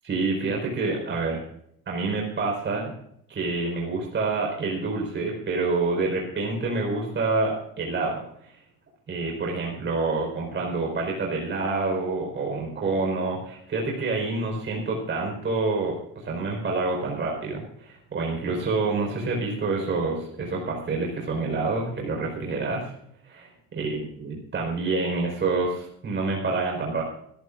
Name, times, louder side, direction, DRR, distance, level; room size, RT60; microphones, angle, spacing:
voice 1, 0.0-1.4 1.9-2.9 3.3-8.5 9.1-22.9 23.2-23.5 23.7-27.0, right 3 dB, 35° right, -1 dB, 4.7 m, -27 dB
23.5 x 14.0 x 2.6 m, 0.70 s
cardioid pair, 120°, 33 cm